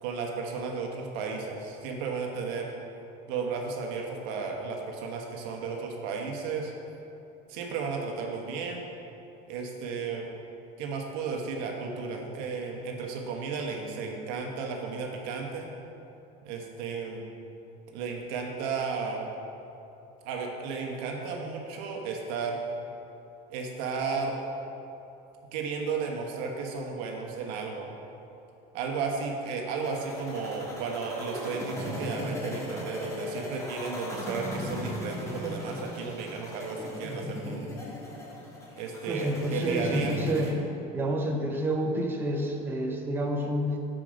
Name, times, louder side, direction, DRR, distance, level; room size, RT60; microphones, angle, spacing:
voice 1, 0.0-2.7 3.3-6.7 7.5-8.8 9.5-10.3 10.8-15.7 16.4-17.2 17.9-19.3 20.2-22.6 23.5-24.4 25.5-27.9 28.7-37.7 38.7-40.2, right 5 dB, 80° right, 1 dB, 1.2 m, -34 dB
sound 1, 29.9-40.5, equal, 15° left, 1.4 m, -37 dB
voice 2, 39.1-40.6 40.9-43.8, right 1 dB, 10° right, 0 dB, 0.6 m, -29 dB
7.9 x 4.9 x 5.0 m, 2.9 s
cardioid pair, 140°, 20 cm